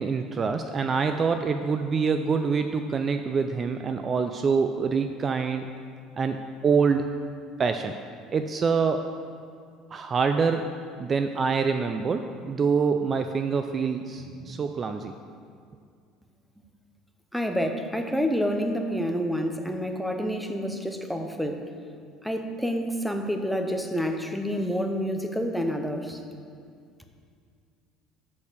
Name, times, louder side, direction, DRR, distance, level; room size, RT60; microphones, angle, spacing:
voice 1, 0.0-5.7 6.1-7.2 7.6-8.0 8.3-9.1 9.9-10.7 11.0-15.1, right 5 dB, 30° right, 7 dB, 0.3 m, -25 dB
voice 2, 17.3-21.6 22.2-26.2, equal, ahead, 4 dB, 0.7 m, -28 dB
6.4 x 5.7 x 6.6 m, 2.2 s
cardioid pair, 125°, 0 cm